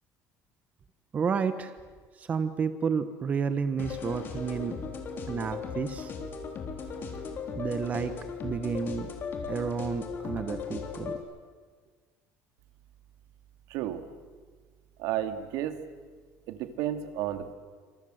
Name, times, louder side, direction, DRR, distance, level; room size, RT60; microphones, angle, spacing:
voice 1, 1.1-1.7 2.2-4.7 5.3-6.1 7.5-8.1 8.4-9.1 9.5-11.2, right 6 dB, 25° right, 10 dB, 1.1 m, -31 dB
sound 1, 3.8-11.2, left 5 dB, 35° left, 3.7 m, -37 dB
voice 2, 13.7-14.0 15.0-15.8 16.5-17.5, right 11 dB, 70° right, 9 dB, 2.4 m, -32 dB
29.0 x 26.5 x 7.9 m, 1.5 s
cardioid pair, 170°, 6 cm